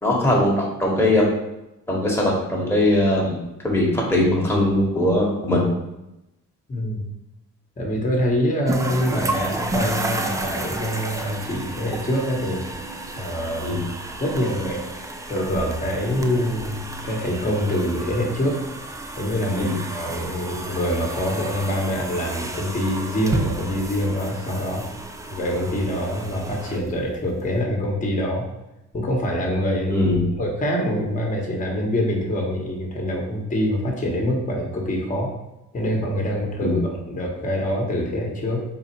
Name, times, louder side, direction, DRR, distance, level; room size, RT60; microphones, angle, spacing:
voice 1, 0.0-1.3 1.9-3.4 3.6-5.7 13.6-13.8 19.5-19.8 29.9-30.2 36.6-36.8, left 1 dB, 10° left, -3 dB, 1.2 m, -20 dB
voice 2, 6.7-7.0 7.8-12.6 13.1-13.7 14.2-18.6 19.2-24.8 25.3-28.5 28.9-30.1 30.4-35.3 35.7-38.6, equal, 25° left, -1 dB, 1.1 m, -25 dB
sound 1, 8.7-27.5, right 2 dB, 10° right, 0.3 m, -32 dB
3.8 x 2.4 x 4.4 m, 0.91 s
cardioid pair, 90°, 30 cm